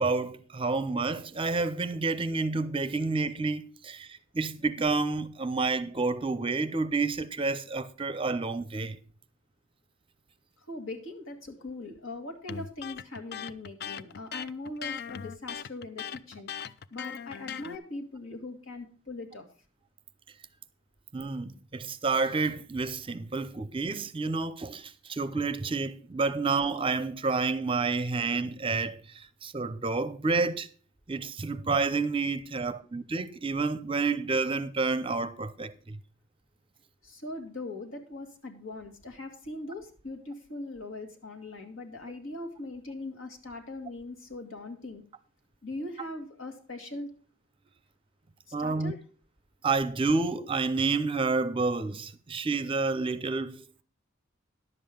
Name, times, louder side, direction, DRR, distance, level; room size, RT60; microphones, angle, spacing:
voice 1, 0.0-4.1 4.3-9.0 21.1-30.7 31.1-36.0 48.5-48.9 49.6-53.8, right 3 dB, 25° right, 0.6 m, -29 dB
voice 2, 10.7-16.5 16.9-19.4 37.0-45.0 45.6-47.1 48.6-49.0, left 2 dB, 75° left, 2.1 m, -40 dB
Electric guitar, 12.5-17.8, left 8 dB, 55° left, 0.4 m, -39 dB
11.0 x 7.6 x 5.0 m
head